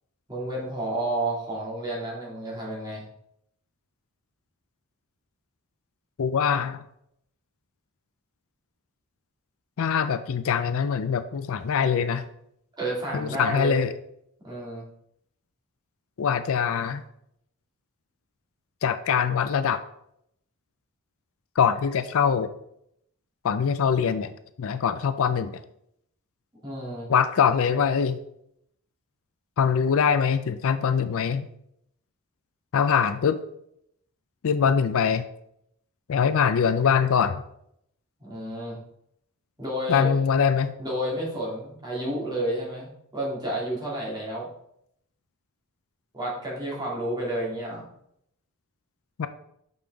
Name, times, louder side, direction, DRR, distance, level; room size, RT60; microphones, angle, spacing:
voice 1, 0.3-3.1 12.8-13.8 14.4-14.8 26.6-27.1 38.2-38.8 39.6-40.1 40.8-44.5 46.1-47.9, right 1 dB, 20° right, -5 dB, 2.2 m, -31 dB
voice 2, 6.2-6.8 9.8-12.2 13.1-13.9 16.2-17.0 18.8-19.8 21.6-22.5 23.4-24.3 24.6-25.6 27.1-28.2 29.6-31.5 32.7-33.4 34.4-35.2 36.1-37.4 39.9-40.7 49.2-49.3, left 7 dB, 65° left, 12 dB, 0.4 m, -23 dB
6.8 x 5.4 x 3.4 m, 0.73 s
head